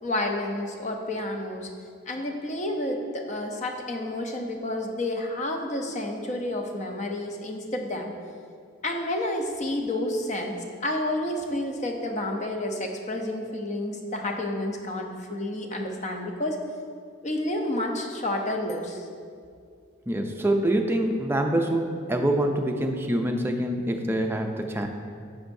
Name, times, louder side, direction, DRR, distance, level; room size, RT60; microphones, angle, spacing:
voice 1, 0.0-1.7 2.1-8.1 8.8-16.6 17.2-19.1, left 1 dB, 35° left, 3 dB, 0.7 m, -30 dB
voice 2, 20.1-21.8 22.1-24.9, right 1 dB, 10° right, 3 dB, 0.5 m, -25 dB
9.9 x 7.0 x 2.6 m, 2.2 s
head